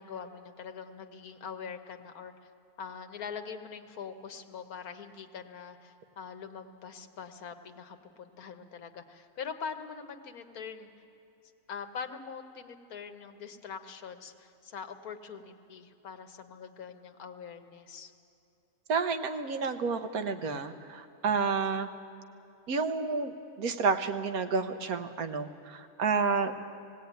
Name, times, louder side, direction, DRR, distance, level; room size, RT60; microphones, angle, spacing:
voice 1, 0.0-2.3 2.8-10.9 11.7-18.1, left 6 dB, 80° left, 7 dB, 1.6 m, -43 dB
voice 2, 18.9-21.9 22.7-23.3 23.6-26.5, right 5 dB, 85° right, 8 dB, 1.5 m, -30 dB
18.5 x 17.5 x 9.3 m, 2.8 s
omnidirectional pair, 1.5 m